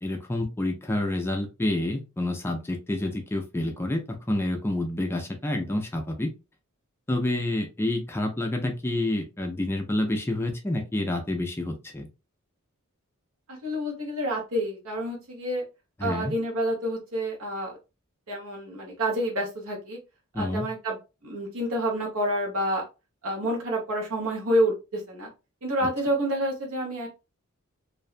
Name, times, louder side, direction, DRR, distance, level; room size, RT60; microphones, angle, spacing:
voice 1, 0.0-6.3 7.1-12.1 16.0-16.3 20.3-20.7, left 1 dB, 10° left, 4 dB, 0.3 m, -28 dB
voice 2, 13.6-15.6 16.0-17.8 18.3-20.0 20.4-21.0 21.2-22.8 23.2-25.3 25.6-27.1, right 1 dB, 80° right, -1 dB, 1.0 m, -28 dB
2.6 x 2.2 x 2.4 m, 0.28 s
head